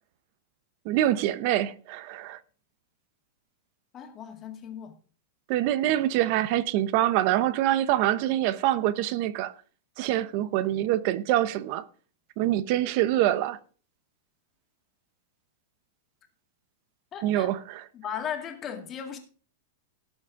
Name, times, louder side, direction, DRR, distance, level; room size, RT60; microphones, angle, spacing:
voice 1, 0.8-2.4 5.5-9.5 10.0-11.8 12.4-13.6 17.2-17.8, right 13 dB, 45° right, 0.8 m, -25 dB
voice 2, 3.9-5.0 17.1-17.6 17.9-19.2, left 8 dB, 25° left, 2.0 m, -37 dB
17.5 x 7.0 x 3.7 m
supercardioid pair, 155°, 0 cm